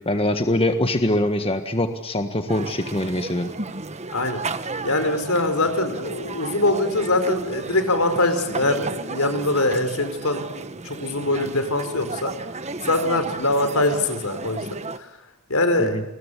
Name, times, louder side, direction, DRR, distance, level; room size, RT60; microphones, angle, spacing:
voice 1, 0.0-3.5 15.8-16.0, left 1 dB, 25° left, 7 dB, 1.5 m, -23 dB
sound 1, 2.5-15.0, right 3 dB, 30° right, 1.3 m, -33 dB
voice 2, 4.1-4.4 4.8-10.4 10.8-12.3 12.9-15.2 15.5-16.0, left 2 dB, 70° left, 9 dB, 4.7 m, -23 dB
29.0 x 22.5 x 8.4 m, 0.86 s
head